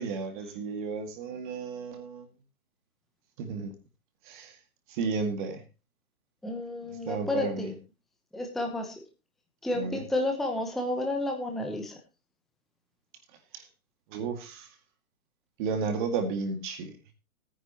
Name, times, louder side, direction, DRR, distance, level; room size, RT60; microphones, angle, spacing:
voice 1, 0.0-2.3 3.4-3.7 4.3-4.5 4.9-5.6 7.1-7.7 9.7-10.0 13.5-13.6 14.1-14.7 15.6-16.9, right 4 dB, 35° right, 2.2 m, -33 dB
voice 2, 6.4-7.7 8.3-8.9 9.6-12.0, left 2 dB, ahead, 0.9 m, -31 dB
17.5 x 9.8 x 2.9 m
hypercardioid pair, 145°, 42 cm